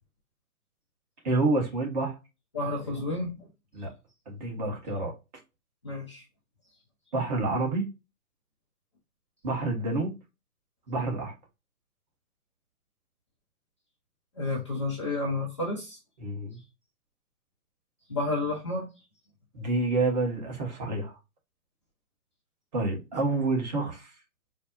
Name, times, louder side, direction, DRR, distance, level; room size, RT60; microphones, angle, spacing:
voice 1, 1.2-2.2 2.9-3.0 3.7-3.9 4.3-5.1 7.1-7.9 9.4-10.1 10.9-11.3 16.2-16.6 19.5-21.2 22.7-24.1, right 3 dB, 30° right, 1.0 m, -28 dB
voice 2, 2.5-3.5 5.8-6.2 14.3-16.0 18.1-18.9, left 2 dB, 20° left, 0.5 m, -31 dB
4.2 x 2.0 x 2.3 m
figure-of-eight pair, 140°, 44 cm